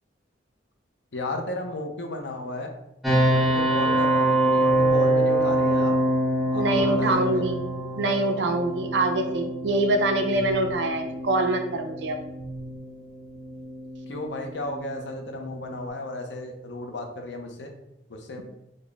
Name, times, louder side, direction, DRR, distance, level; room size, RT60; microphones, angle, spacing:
voice 1, 1.1-2.7 3.3-6.0 6.5-7.4 14.1-17.7 18.1-18.4, left 1 dB, 85° left, 4 dB, 0.6 m, -34 dB
sound 1, 3.0-15.9, right 1 dB, ahead, 0.6 m, -25 dB
voice 2, 6.5-7.6 8.0-12.2, right 2 dB, 85° right, 5 dB, 0.5 m, -24 dB
4.0 x 2.0 x 3.4 m, 0.90 s
head